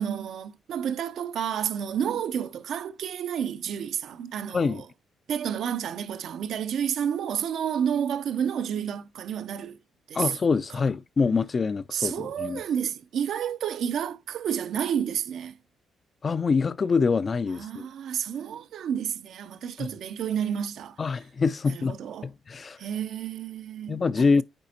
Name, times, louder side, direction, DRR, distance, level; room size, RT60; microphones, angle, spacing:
voice 1, 0.0-4.9 5.3-9.8 10.1-10.3 11.9-15.6 17.5-21.0 21.7-22.3 22.8-24.0, right 8 dB, 70° right, 0.4 m, -30 dB
voice 2, 10.1-12.6 16.2-17.9 19.8-19.9 21.0-22.0 22.2-22.8 23.9-24.4, left 4 dB, 35° left, 0.3 m, -25 dB
8.8 x 4.1 x 2.8 m
cardioid pair, 100°, 0 cm